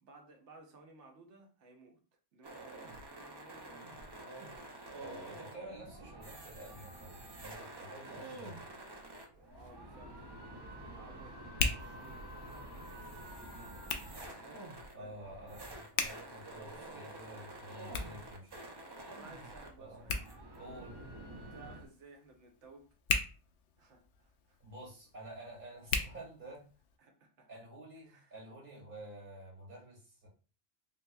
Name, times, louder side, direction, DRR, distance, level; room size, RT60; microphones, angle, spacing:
voice 1, 0.0-2.0 2.3-3.8 4.4-4.8 8.0-8.2 9.4-15.2 19.1-20.2 21.5-22.9 23.8-24.6 27.0-27.5 28.0-28.4, right 3 dB, 75° right, 1.1 m, -58 dB
sound 1, 2.4-21.8, right 1 dB, 30° right, 0.4 m, -48 dB
voice 2, 5.0-8.6 14.9-18.6 19.8-20.0 20.5-20.9 24.6-26.6 27.5-30.3, right 1 dB, 50° right, 1.6 m, -50 dB
Hands, 9.3-27.0, left 5 dB, 80° left, 0.9 m, -42 dB
4.0 x 2.8 x 2.3 m
omnidirectional pair, 1.2 m